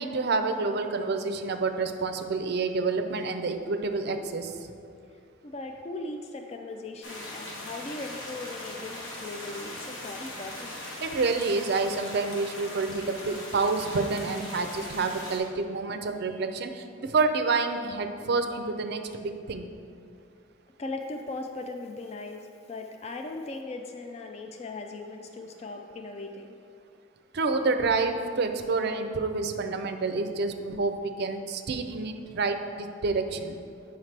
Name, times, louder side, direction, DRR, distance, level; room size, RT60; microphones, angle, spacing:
voice 1, 0.0-4.5 11.0-19.7 27.3-33.6, right 3 dB, 55° right, 7 dB, 0.4 m, -28 dB
voice 2, 5.4-10.8 20.8-26.6, left 2 dB, 30° left, 4 dB, 0.3 m, -38 dB
sound 1, 7.0-15.4, left 1 dB, 65° left, 1.2 m, -40 dB
7.3 x 5.6 x 3.3 m, 2.4 s
head